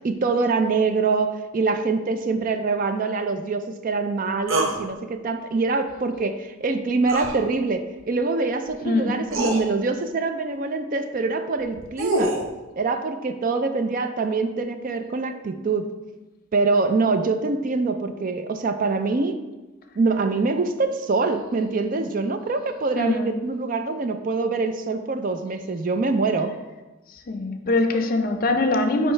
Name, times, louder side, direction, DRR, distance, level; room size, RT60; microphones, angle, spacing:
voice 1, 0.0-12.4 12.8-15.9 16.5-19.3 20.0-26.5, right 3 dB, 45° right, 8 dB, 0.4 m, -24 dB
sound 1, 4.5-4.8 7.1-7.3 8.7-8.8 9.3-9.6 11.6-12.5, right 1 dB, 80° right, 0.8 m, -24 dB
voice 2, 23.0-23.4 27.3-29.1, left 2 dB, 45° left, 6 dB, 0.5 m, -22 dB
9.2 x 3.1 x 3.3 m, 1.1 s
head